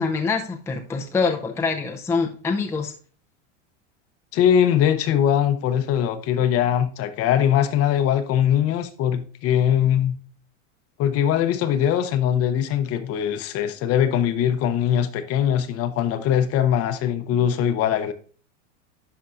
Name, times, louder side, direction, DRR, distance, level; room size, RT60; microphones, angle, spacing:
voice 1, 0.0-2.9, left 4 dB, 5° left, 0.5 m, -25 dB
voice 2, 4.3-10.2 11.0-18.1, left 9 dB, 40° left, 0.8 m, -21 dB
11.5 x 4.5 x 2.5 m
supercardioid pair, 115°, 38 cm